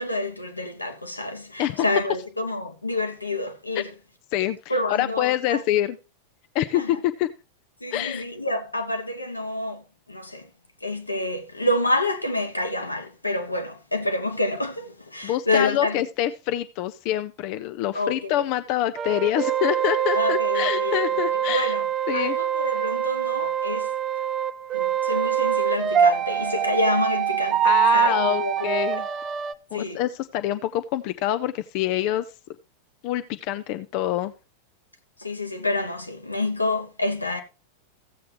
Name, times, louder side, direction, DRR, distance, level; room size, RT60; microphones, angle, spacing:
voice 1, 0.0-3.9 4.7-5.6 6.7-7.0 7.8-10.5 10.8-16.0 17.9-18.4 20.1-21.9 22.1-23.9 24.7-28.8 29.7-30.0 35.2-37.4, left 2 dB, 85° left, 1.1 m, -28 dB
voice 2, 4.9-6.0 6.5-7.3 7.9-8.2 15.2-21.7 22.1-22.4 27.6-29.1 29.7-32.3 33.0-34.3, left 13 dB, 45° left, 0.5 m, -26 dB
sound 1, 19.0-29.5, right 9 dB, 25° right, 0.7 m, -24 dB
15.0 x 7.7 x 3.3 m
figure-of-eight pair, 90°, 0 cm